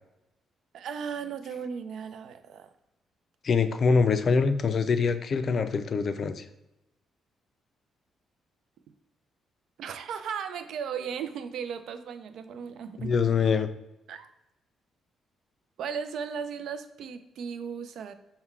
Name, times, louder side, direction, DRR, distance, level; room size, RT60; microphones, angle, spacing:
voice 1, 0.7-2.7 9.8-13.1 14.1-14.3 15.8-18.1, right 7 dB, 75° right, 10 dB, 0.3 m, -36 dB
voice 2, 3.4-6.4 13.0-13.7, left 5 dB, 50° left, 10 dB, 0.3 m, -24 dB
3.8 x 2.1 x 4.4 m, 0.91 s
cardioid pair, 90°, 0 cm